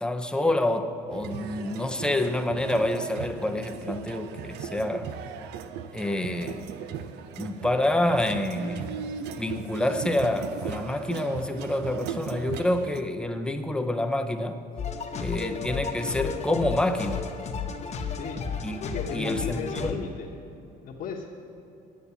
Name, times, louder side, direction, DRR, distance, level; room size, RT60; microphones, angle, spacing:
voice 1, 0.0-5.1 5.9-6.7 7.4-8.9 9.4-14.6 15.2-17.2 18.6-20.0, left 1 dB, 5° left, 6 dB, 0.6 m, -27 dB
sound 1, 1.1-13.0, right 8 dB, 80° right, 0.5 m, -37 dB
sound 2, 14.8-19.9, left 5 dB, 40° left, 1.0 m, -33 dB
voice 2, 18.1-18.6 18.8-20.3 20.8-21.3, left 5 dB, 60° left, -5 dB, 1.1 m, -35 dB
9.8 x 7.3 x 7.0 m, 2.9 s
cardioid pair, 110°, 17 cm